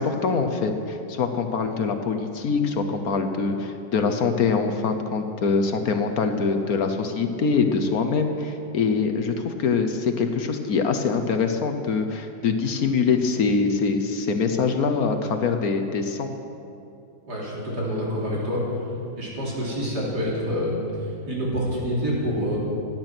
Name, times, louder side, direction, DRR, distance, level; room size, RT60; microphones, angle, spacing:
voice 1, 0.0-16.3, left 5 dB, 55° left, 6 dB, 1.2 m, -24 dB
voice 2, 17.3-18.6 19.2-22.6, equal, 55° right, -5 dB, 4.0 m, -27 dB
17.0 x 10.5 x 6.0 m, 2.6 s
omnidirectional pair, 2.1 m